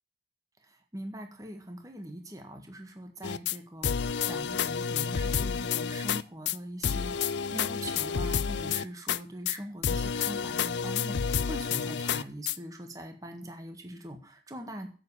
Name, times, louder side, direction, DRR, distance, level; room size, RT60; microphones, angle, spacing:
voice 1, 0.7-14.9, right 1 dB, 20° right, 5 dB, 1.6 m, -42 dB
sound 1, 3.2-3.6 3.8-6.2 6.5-6.6 6.8-9.2 9.5-9.6 9.8-12.6, left 7 dB, 75° left, 0.5 m, -30 dB
10.5 x 8.0 x 8.4 m, 0.39 s
head